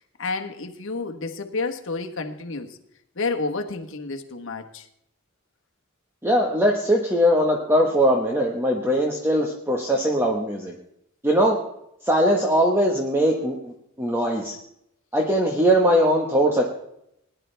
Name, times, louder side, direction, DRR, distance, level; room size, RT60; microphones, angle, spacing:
voice 1, 0.2-2.8 3.2-4.8, left 3 dB, 65° left, 1.3 m, -30 dB
voice 2, 6.2-10.8 11.2-11.6 12.0-14.5 15.1-16.6, equal, 10° right, 1.3 m, -21 dB
20.0 x 11.0 x 3.4 m
head